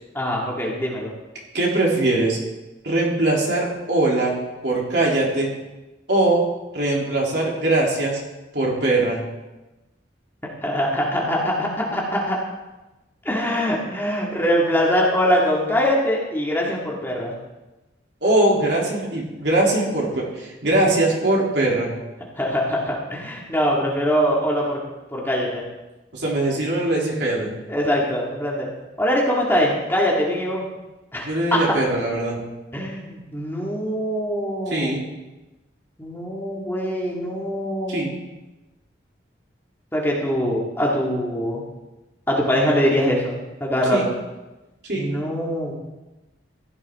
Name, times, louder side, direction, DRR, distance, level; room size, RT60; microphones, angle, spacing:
voice 1, 0.1-1.1 10.6-12.4 13.2-17.3 22.4-24.8 25.1-25.6 27.7-28.7 29.0-30.6 31.1-31.6 32.7-34.9 36.0-38.1 39.9-41.6 42.3-44.1 44.9-45.8, equal, 10° left, -3 dB, 2.1 m, -23 dB
voice 2, 1.5-2.4 2.8-5.5 6.1-6.4 6.7-8.2 8.5-9.2 18.2-21.9 26.1-27.5 31.3-32.4 34.7-35.0 37.9-38.1 43.9-44.1 44.9-45.1, right 2 dB, 60° right, -3 dB, 3.2 m, -21 dB
15.5 x 11.5 x 3.7 m, 1.1 s
head